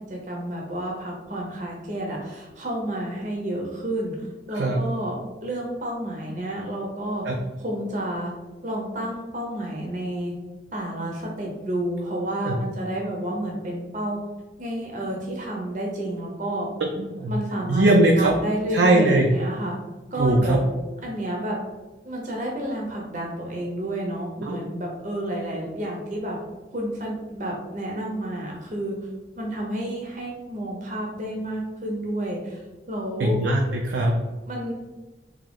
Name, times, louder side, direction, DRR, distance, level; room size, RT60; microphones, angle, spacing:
voice 1, 0.0-5.1 5.4-7.2 7.6-8.3 8.6-10.3 10.7-14.2 14.6-16.7 17.3-17.8 18.2-19.7 20.1-20.7 21.0-21.6 22.0-26.4 26.7-29.0 29.4-32.6 32.9-33.4 34.5-34.7, right 1 dB, 45° right, -1 dB, 0.6 m, -30 dB
voice 2, 4.5-4.8 7.2-7.4 12.5-12.6 17.0-17.3 17.7-18.3 18.7-19.3 20.2-20.6 24.4-24.6 33.2-34.1, right 2 dB, 85° right, 1 dB, 0.5 m, -20 dB
3.6 x 2.7 x 3.5 m, 1.2 s
head